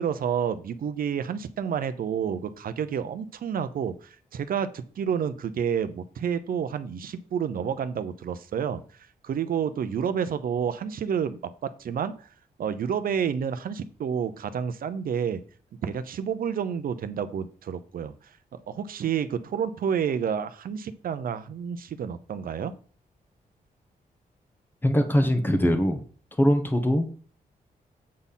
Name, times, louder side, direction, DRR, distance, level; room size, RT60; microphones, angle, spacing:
voice 1, 0.0-8.8 9.2-12.1 12.6-15.4 15.8-18.1 18.7-22.7, right 7 dB, 70° right, 12 dB, 0.8 m, -29 dB
voice 2, 24.8-26.0 26.4-27.1, equal, 15° left, 7 dB, 1.1 m, -22 dB
8.6 x 4.2 x 5.6 m, 0.42 s
wide cardioid pair, 140°, 15 cm